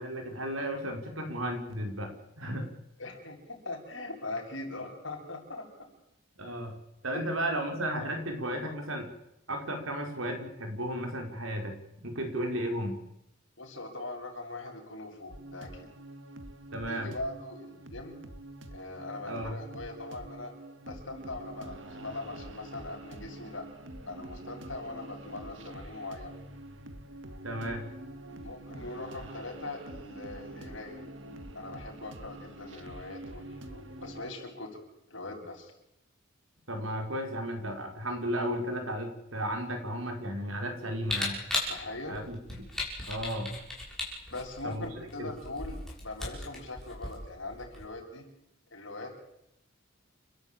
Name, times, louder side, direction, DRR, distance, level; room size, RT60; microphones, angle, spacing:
voice 1, 0.0-2.7 6.4-6.8 7.0-9.1 9.5-13.0 16.7-17.1 19.2-19.6 27.4-27.9 36.7-41.4 42.1-42.7 43.1-43.6 44.6-44.9 45.2-45.3, equal, 85° right, 4 dB, 5.0 m, -34 dB
voice 2, 3.0-5.7 7.1-7.3 8.0-8.1 13.6-15.9 16.9-18.2 18.7-20.5 20.8-23.7 24.1-26.3 28.4-31.0 31.5-34.8 35.1-35.7 41.7-42.2 44.3-48.3 48.7-49.1, left 2 dB, 65° left, 0 dB, 7.4 m, -41 dB
sound 1, 15.3-34.3, right 1 dB, 65° right, 2.0 m, -46 dB
Camera, 41.0-47.8, left 2 dB, 5° left, 7.0 m, -37 dB
29.5 x 13.0 x 8.9 m, 0.82 s
head